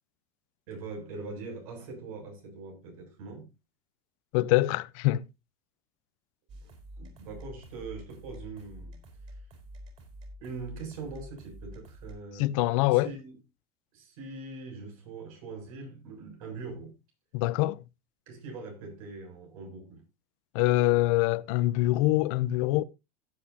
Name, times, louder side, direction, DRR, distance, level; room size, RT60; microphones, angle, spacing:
voice 1, 0.7-3.5 6.6-6.7 7.0-9.0 9.3-9.4 10.4-12.5 12.9-13.3 13.9-16.9 18.3-20.0, right 3 dB, 80° right, 7.3 m, -42 dB
voice 2, 4.3-5.2 12.4-13.1 17.3-17.8 20.5-22.8, left 18 dB, 70° left, 0.7 m, -24 dB
sound 1, 6.5-12.2, equal, 40° right, 4.9 m, -47 dB
17.0 x 8.2 x 2.8 m
supercardioid pair, 140°, 18 cm